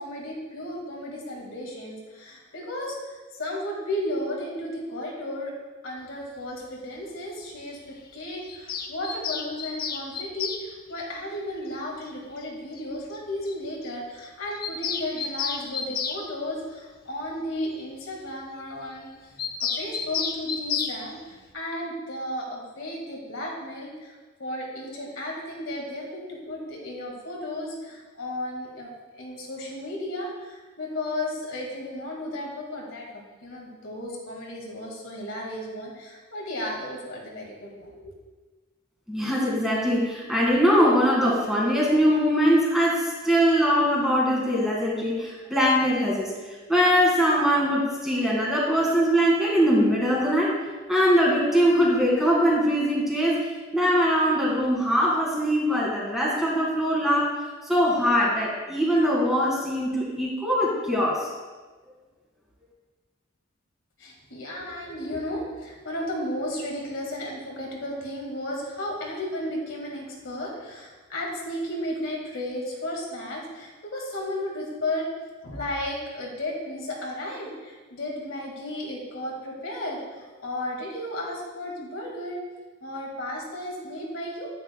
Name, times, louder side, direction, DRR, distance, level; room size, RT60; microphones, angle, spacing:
voice 1, 0.0-5.5 5.8-38.1 64.0-75.1 75.4-82.4 82.8-84.5, left 1 dB, 80° left, -2 dB, 1.9 m, -34 dB
Bird vocalization bird call bird song, 8.5-10.6 12.1-12.2 12.4-12.5 12.7-12.8 13.1-13.2 13.5-13.6 13.8-14.0 14.2-16.2 19.4-21.0, left 6 dB, 50° left, 0.5 m, -31 dB
voice 2, 39.1-46.3 46.7-50.6 50.9-53.4 53.7-57.3 57.6-61.3, equal, ahead, -4 dB, 1.8 m, -22 dB
9.3 x 9.0 x 2.3 m, 1.3 s
head